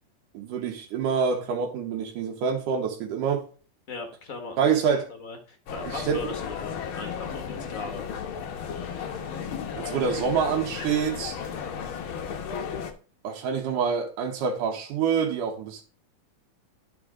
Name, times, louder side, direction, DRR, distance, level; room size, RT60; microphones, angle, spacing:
voice 1, 0.3-3.5 4.6-5.1 5.9-6.2 9.7-11.4 13.2-15.8, right 6 dB, 85° right, 2.6 m, -26 dB
voice 2, 3.9-8.1, left 4 dB, 50° left, 0.9 m, -39 dB
sound 1, 5.7-12.9, left 7 dB, 75° left, 1.2 m, -34 dB
11.0 x 4.9 x 3.6 m
omnidirectional pair, 3.6 m